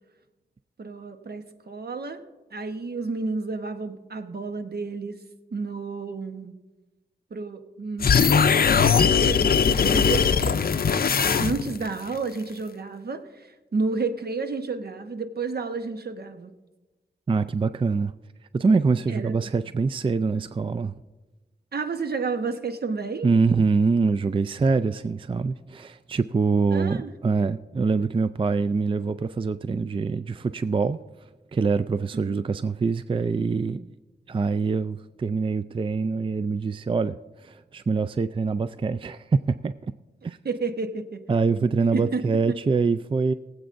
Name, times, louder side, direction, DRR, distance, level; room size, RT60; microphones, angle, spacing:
voice 1, 0.8-2.2 2.5-5.2 5.5-6.6 7.3-10.6 11.4-16.5 19.1-19.5 21.7-23.3 26.7-27.1 32.1-32.3 40.4-41.2 41.9-42.6, right 4 dB, 60° right, 1.0 m, -31 dB
sound 1, 8.0-11.9, left 6 dB, 60° left, 0.5 m, -20 dB
voice 2, 17.3-18.1 18.5-20.9 23.2-31.0 31.5-33.9 34.3-39.7 40.2-40.4 41.3-43.3, right 4 dB, 30° right, 0.4 m, -24 dB
22.5 x 8.0 x 2.6 m
cardioid pair, 55°, 18 cm